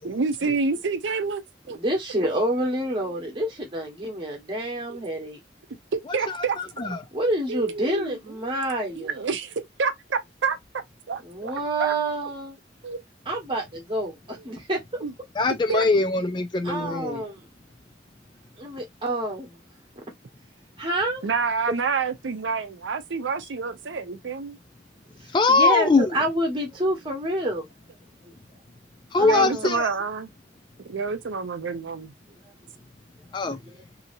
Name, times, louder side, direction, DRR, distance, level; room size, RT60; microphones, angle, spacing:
voice 1, 0.0-1.8 4.9-5.0 5.9-7.0 7.5-8.2 9.0-10.6 11.1-11.9 12.8-13.0 15.0-15.1 15.7-15.8 21.2-24.6 29.2-30.3 30.8-32.1, right 5 dB, 80° right, 0.5 m, -28 dB
voice 2, 1.7-5.4 7.1-9.2 11.2-12.6 13.3-15.0 16.6-17.5 18.6-19.6 20.8-21.2 25.2-27.6 28.2-28.3 29.2-29.7 33.4-33.8, right 1 dB, 25° right, 1.2 m, -28 dB
voice 3, 15.4-17.2 25.3-26.1 29.1-29.9 33.3-33.6, left 3 dB, 25° left, 0.3 m, -21 dB
2.8 x 2.8 x 2.5 m
head